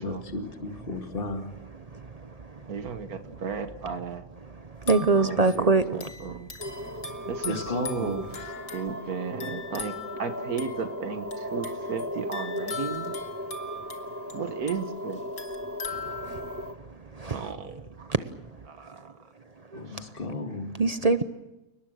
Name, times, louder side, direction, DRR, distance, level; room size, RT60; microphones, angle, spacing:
voice 1, 0.0-1.5 7.4-8.3 19.7-20.8, left 3 dB, 40° left, 2.3 m, -34 dB
voice 2, 2.7-4.2 5.2-6.5 7.3-8.2 8.7-13.1 14.3-15.2 17.3-18.1 18.7-19.1 19.9-20.0, right 5 dB, 85° right, 1.9 m, -34 dB
sound 1, 4.8-16.7, left 5 dB, 75° left, 2.5 m, -41 dB
voice 3, 4.9-6.0 17.2-17.4 19.7-19.8 20.8-21.2, right 3 dB, 35° right, 0.8 m, -22 dB
sound 2, 6.6-16.7, equal, 10° right, 1.2 m, -37 dB
29.5 x 19.5 x 6.5 m
omnidirectional pair, 1.5 m